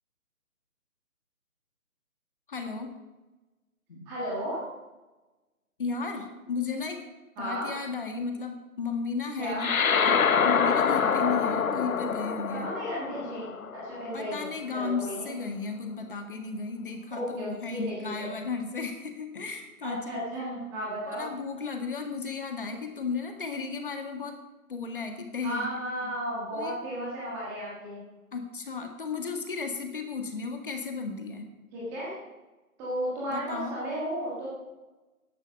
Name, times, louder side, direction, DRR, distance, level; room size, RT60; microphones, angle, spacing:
voice 1, 2.5-2.9 3.9-4.1 5.8-7.0 7.4-9.8 10.0-10.2 10.4-12.7 14.1-20.2 21.1-24.4 24.7-25.7 26.0-26.2 26.5-26.8 28.3-31.5 33.3-33.8, left 4 dB, 35° left, 5 dB, 1.8 m, -34 dB
voice 2, 4.1-4.6 7.4-7.7 9.4-10.2 11.0-11.4 12.5-14.5 14.7-15.3 17.1-18.3 19.8-21.2 25.4-28.0 31.7-32.1 32.8-34.5, equal, 5° right, -6 dB, 1.5 m, -34 dB
sound 1, 9.6-14.3, left 6 dB, 70° left, 1.0 m, -26 dB
14.0 x 11.5 x 5.3 m, 1.1 s
hypercardioid pair, 165°, 44 cm